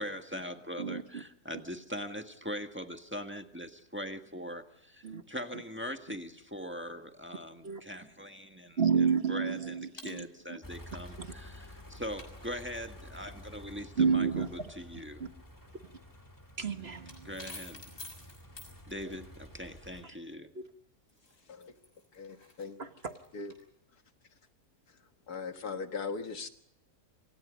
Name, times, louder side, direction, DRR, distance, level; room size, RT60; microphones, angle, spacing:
voice 1, 0.0-15.3 17.2-17.8 18.9-20.5, equal, 10° right, 1.5 m, -41 dB
voice 2, 0.8-1.2 5.0-5.2 7.6-7.8 8.8-10.2 11.2-11.3 14.0-14.5 16.6-17.3 20.5-20.6 22.8-23.2, right 6 dB, 45° right, 1.5 m, -30 dB
sound 1, 10.0-10.2 12.2-12.3 15.5-15.6 16.1-16.2 16.5-18.7 21.1-23.6, left 2 dB, 55° left, 6.6 m, -49 dB
sound 2, 10.6-20.0, left 1 dB, 10° left, 2.5 m, -51 dB
voice 3, 22.1-22.8 23.3-23.5 25.3-26.5, left 4 dB, 80° left, 2.2 m, -39 dB
28.0 x 25.0 x 5.2 m
omnidirectional pair, 1.6 m